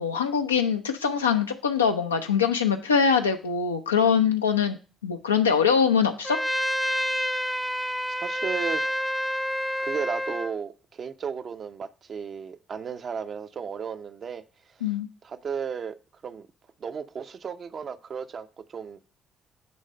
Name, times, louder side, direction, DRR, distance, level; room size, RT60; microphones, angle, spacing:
voice 1, 0.0-6.4 14.8-15.1, left 6 dB, 90° left, 0.5 m, -23 dB
Trumpet, 6.2-10.5, equal, ahead, 0.6 m, -28 dB
voice 2, 8.1-9.1 9.8-14.4 14.7-14.8 15.2-16.0 16.2-16.5 16.8-19.0, right 6 dB, 50° right, 0.6 m, -34 dB
9.5 x 3.2 x 5.2 m
hypercardioid pair, 45°, 0 cm